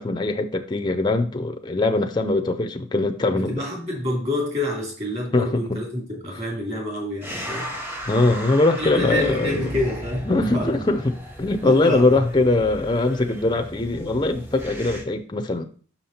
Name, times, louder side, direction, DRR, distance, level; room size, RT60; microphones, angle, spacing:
voice 1, 0.0-3.6 5.3-5.8 8.1-9.7 10.3-15.6, left 2 dB, 20° left, 0.5 m, -22 dB
voice 2, 3.3-7.7 8.8-10.8 11.6-12.2, left 1 dB, 35° right, 2.7 m, -27 dB
sound 1, 7.2-15.0, equal, 10° right, 0.9 m, -35 dB
5.9 x 5.5 x 4.3 m
head